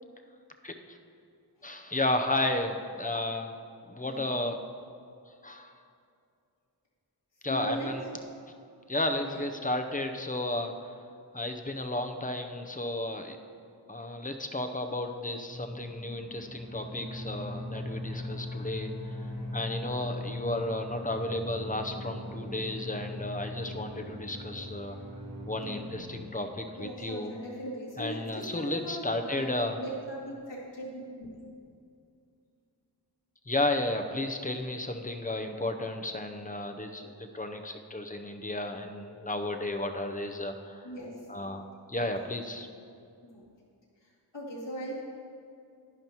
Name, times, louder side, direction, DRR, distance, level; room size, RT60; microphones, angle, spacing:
voice 1, 0.6-1.0 1.6-3.5 3.9-4.6 5.4-5.8 7.4-8.0 8.9-10.9 11.3-13.4 13.9-19.2 19.5-25.0 25.5-27.3 28.0-29.8 33.5-40.9 41.3-42.7, left 1 dB, 20° left, 5 dB, 0.6 m, -33 dB
voice 2, 4.0-4.3 7.5-7.9 9.2-9.3 25.6-25.9 26.7-29.5 29.8-31.0 40.8-41.3 43.2-43.4 44.3-45.0, right 1 dB, 85° left, -6 dB, 2.5 m, -39 dB
sound 1, 15.5-26.3, left 1 dB, 40° right, 2.1 m, -39 dB
11.0 x 10.5 x 3.0 m, 2.4 s
wide cardioid pair, 80°, 42 cm